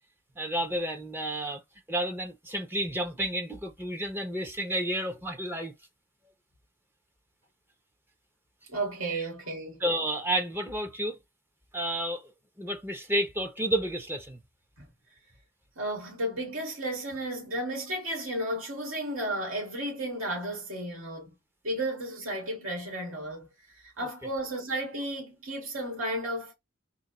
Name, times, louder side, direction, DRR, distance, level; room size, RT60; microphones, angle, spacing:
voice 1, 0.4-1.6 1.9-5.7 9.1-9.2 9.8-11.2 11.7-12.3 12.6-14.4, right 1 dB, 10° right, 0.7 m, -31 dB
voice 2, 8.7-9.8 14.8-14.9 15.8-21.4 21.6-23.5 23.8-26.5, right 1 dB, 75° right, 2.1 m, -33 dB
3.9 x 2.3 x 4.1 m
head